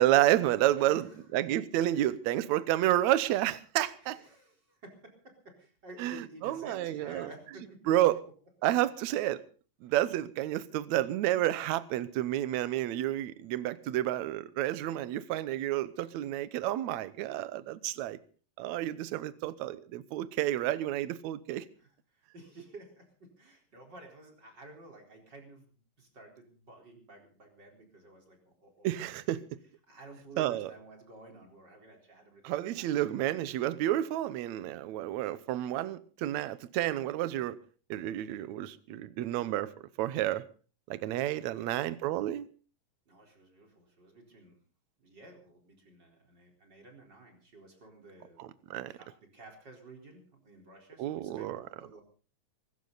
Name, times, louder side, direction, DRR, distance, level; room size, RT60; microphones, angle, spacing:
voice 1, 0.0-1.0 1.3-4.2 6.0-7.3 7.9-8.2 8.6-9.4 9.8-18.2 18.6-21.7 28.8-29.4 30.4-30.7 32.4-37.6 37.9-39.7 40.0-40.4 40.9-42.5 48.4-48.9 51.0-51.6, right 14 dB, 70° right, 1.9 m, -30 dB
voice 2, 0.8-1.4 4.0-8.1 21.8-28.9 29.9-33.0 41.4-41.9 43.1-44.6 45.0-52.0, right 2 dB, 30° right, 4.6 m, -52 dB
23.5 x 14.0 x 4.0 m
omnidirectional pair, 4.0 m